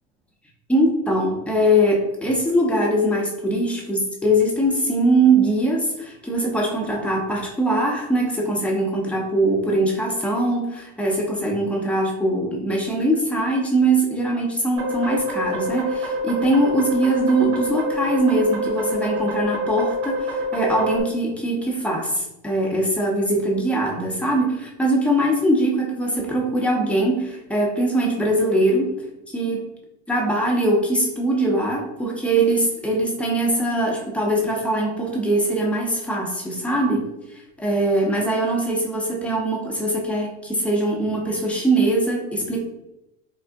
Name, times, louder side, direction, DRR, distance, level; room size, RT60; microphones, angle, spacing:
voice 1, 0.7-28.9 29.3-29.7 30.1-42.6, right 1 dB, 5° left, -2 dB, 0.8 m, -22 dB
sound 1, 14.8-21.0, equal, 80° right, 1.4 m, -26 dB
3.8 x 2.4 x 3.5 m, 0.87 s
supercardioid pair, 130°, 33 cm